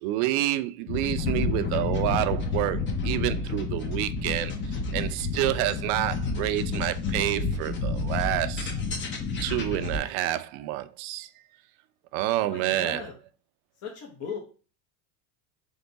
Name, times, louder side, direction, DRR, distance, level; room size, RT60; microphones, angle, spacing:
voice 1, 0.0-8.7 9.4-11.3 12.1-13.0, right 15 dB, 55° right, 0.5 m, -28 dB
sound 1, 0.9-10.0, left 3 dB, 25° left, 0.7 m, -30 dB
voice 2, 12.4-13.1 13.8-14.4, left 6 dB, 45° left, 1.1 m, -37 dB
3.5 x 3.5 x 4.0 m
supercardioid pair, 125°, 46 cm